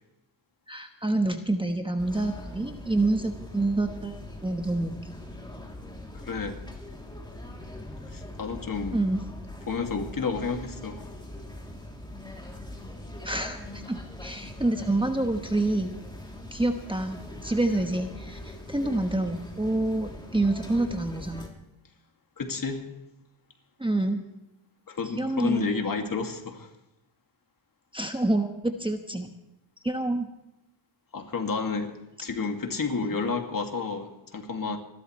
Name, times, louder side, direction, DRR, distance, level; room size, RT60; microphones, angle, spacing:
voice 1, 0.7-5.1 8.9-9.2 13.2-16.0 16.5-21.5 23.8-24.2 25.2-25.7 27.9-29.3 29.8-30.3 33.1-33.2, right 2 dB, 10° right, 5 dB, 1.2 m, -27 dB
sound 1, 2.0-21.5, left 1 dB, 10° left, 3.1 m, -42 dB
voice 2, 6.2-6.6 8.1-9.1 9.7-11.1 22.4-22.9 24.9-26.7 31.1-34.8, left 4 dB, 45° left, 4 dB, 2.4 m, -31 dB
27.5 x 13.0 x 3.2 m, 0.91 s
cardioid pair, 90°, 46 cm